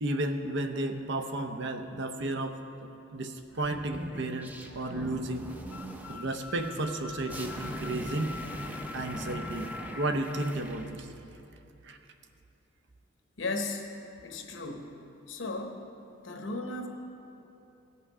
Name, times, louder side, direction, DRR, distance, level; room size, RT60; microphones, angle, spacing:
voice 1, 0.0-2.6 3.1-5.5 6.1-8.4 8.9-9.7 10.0-11.1 11.8-12.0, right 2 dB, 60° right, 6 dB, 0.7 m, -33 dB
sound 1, 3.5-10.9, right 1 dB, 10° right, 0.5 m, -41 dB
sound 2, 5.7-10.5, left 6 dB, 85° left, 0.4 m, -45 dB
voice 2, 13.4-13.9 14.2-15.0 15.3-15.8 16.2-16.9, left 2 dB, 65° left, 4 dB, 1.0 m, -35 dB
17.0 x 5.8 x 4.8 m, 2.9 s
head